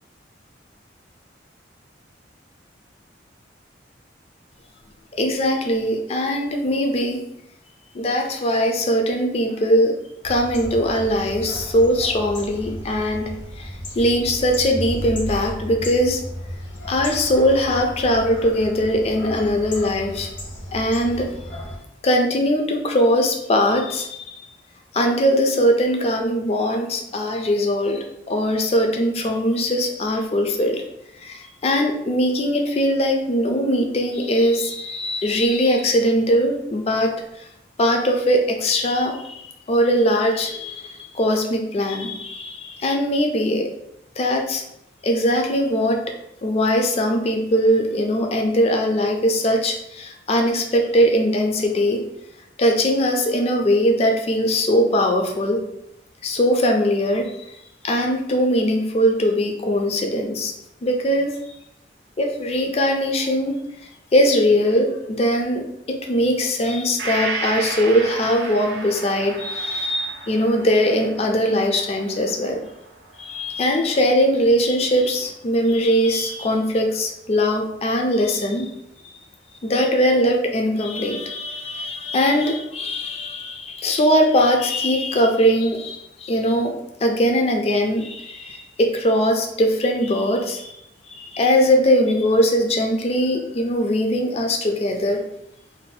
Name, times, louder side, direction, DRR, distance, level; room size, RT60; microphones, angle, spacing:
voice 1, 5.1-7.3 7.9-10.0 10.2-16.2 16.9-20.3 20.7-21.3 22.0-24.5 24.9-30.8 31.2-37.1 37.4-37.5 37.8-43.7 44.2-44.6 45.0-46.0 46.4-52.2 52.6-55.6 56.2-57.3 57.8-60.5 60.8-61.4 62.2-72.6 73.2-78.7 79.6-90.7 91.0-95.2, equal, 35° left, 3 dB, 0.4 m, -21 dB
sound 1, 10.2-21.8, equal, 75° left, 1.1 m, -34 dB
Gong, 67.0-74.6 75.0-75.1, right 3 dB, 65° right, 0.6 m, -34 dB
2.6 x 2.1 x 3.9 m, 0.81 s
head